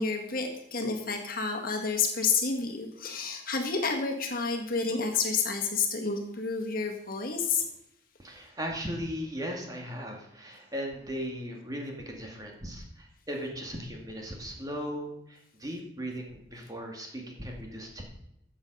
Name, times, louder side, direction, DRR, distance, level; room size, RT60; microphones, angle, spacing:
voice 1, 0.0-7.6, left 5 dB, 50° left, 3 dB, 1.8 m, -30 dB
voice 2, 8.2-18.0, equal, 20° right, 0 dB, 2.1 m, -37 dB
14.0 x 7.4 x 5.5 m, 0.80 s
head